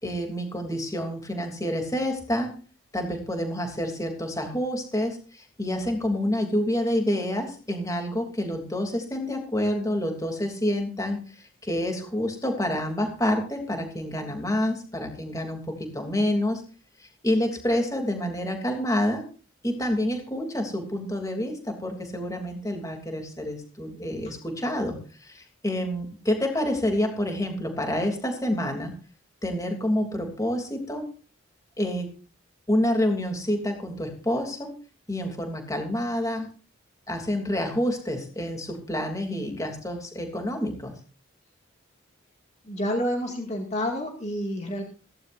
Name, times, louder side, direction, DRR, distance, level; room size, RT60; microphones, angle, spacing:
voice 1, 0.0-2.5 2.9-16.6 17.0-19.2 19.6-28.9 29.4-31.1 31.8-32.1 32.7-34.7 35.1-36.5 37.1-41.0, left 1 dB, 15° left, 3 dB, 3.1 m, -28 dB
voice 2, 42.7-44.8, equal, 35° left, 1 dB, 2.3 m, -29 dB
16.5 x 16.5 x 2.7 m, 0.37 s
head